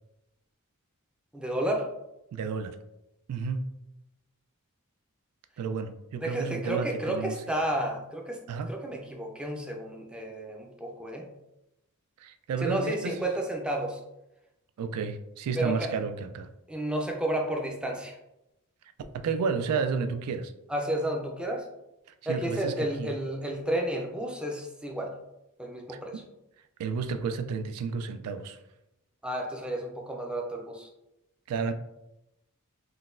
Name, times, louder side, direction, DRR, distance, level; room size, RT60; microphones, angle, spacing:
voice 1, 1.3-1.9 6.2-8.4 8.7-11.3 12.6-14.0 15.6-15.9 16.7-18.2 20.7-21.7 22.3-25.1 25.6-26.2 29.2-30.9, right 1 dB, 5° right, 1 dB, 0.4 m, -31 dB
voice 2, 2.3-2.8 3.3-3.7 5.6-7.4 8.5-8.7 12.2-13.2 14.8-16.5 19.1-20.5 22.3-23.1 25.9-26.2 26.8-28.6 31.5-31.7, right 5 dB, 85° right, 10 dB, 0.3 m, -31 dB
3.8 x 2.2 x 2.4 m, 0.90 s
head